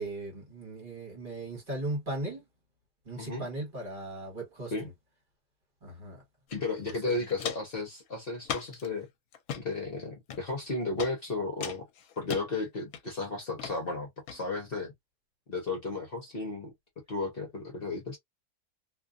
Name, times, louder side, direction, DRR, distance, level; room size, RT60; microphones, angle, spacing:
voice 1, 0.0-2.4 3.0-4.9 5.8-6.2 6.8-7.2, right 2 dB, 35° right, 1.5 m, -38 dB
Walk footsteps, 6.5-6.6 6.9-7.8 8.4-8.9 9.3-9.6 10.3-10.7 11.0-11.1 11.6-12.4 12.9-13.3 13.6-13.8 14.3-14.4, left 8 dB, 75° left, 1.0 m, -37 dB
voice 2, 6.5-9.1 9.6-11.9 12.2-14.9 15.5-16.7 17.1-18.2, left 3 dB, 45° left, 0.9 m, -34 dB
2.6 x 2.4 x 2.3 m
omnidirectional pair, 1.5 m